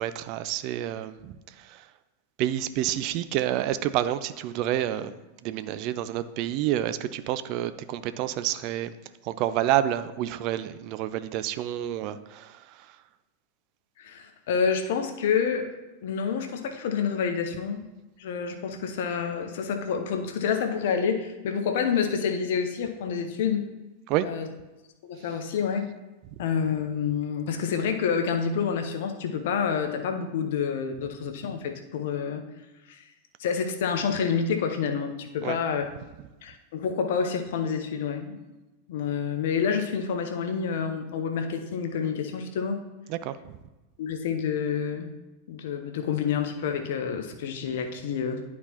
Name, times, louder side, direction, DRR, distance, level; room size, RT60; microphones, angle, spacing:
voice 1, 0.0-1.9 2.4-5.1 5.4-8.9 9.2-13.0 24.1-24.3 35.4-35.6 43.1-43.6, right 12 dB, 40° right, 13 dB, 0.3 m, -29 dB
voice 2, 14.0-15.7 16.0-17.9 18.2-23.7 24.2-24.5 25.0-25.9 26.4-32.4 32.9-33.0 33.4-35.8 36.4-38.4 38.9-42.8 44.0-45.1 45.5-48.4, left 6 dB, 55° left, 6 dB, 0.7 m, -28 dB
11.0 x 4.2 x 2.9 m, 1.1 s
figure-of-eight pair, 90°, 0 cm